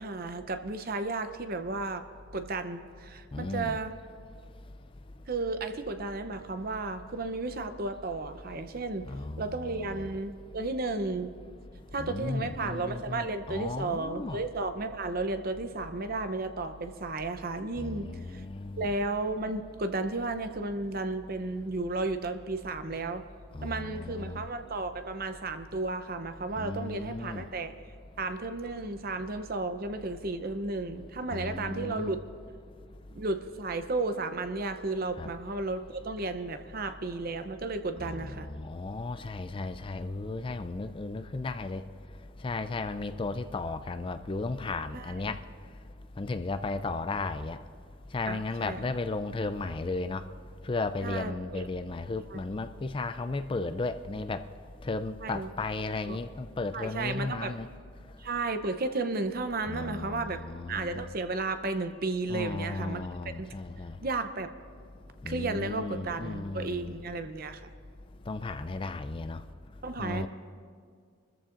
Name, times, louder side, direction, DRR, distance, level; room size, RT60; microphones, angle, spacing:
voice 1, 0.0-2.0 2.3-3.9 5.3-9.1 9.4-11.3 11.9-18.4 18.8-23.2 23.6-27.7 28.2-32.2 33.1-38.5 44.9-45.3 48.3-48.8 51.0-51.7 52.3-52.4 55.2-55.5 56.1-56.2 56.7-57.5 58.2-60.4 60.7-63.0 63.4-63.5 64.0-64.5 65.3-67.7 69.8-70.3, right 3 dB, 45° right, 0.7 m, -33 dB
voice 2, 3.3-3.8 9.1-10.1 12.0-14.4 17.8-18.9 23.5-24.4 26.6-27.4 31.3-32.1 35.2-35.3 38.0-41.8 42.4-45.4 46.2-47.6 48.1-50.2 50.6-54.4 54.8-57.7 59.7-61.1 62.3-64.0 65.2-67.0 68.3-69.4 70.0-70.3, left 3 dB, 25° left, 0.4 m, -35 dB
28.0 x 14.0 x 2.6 m
head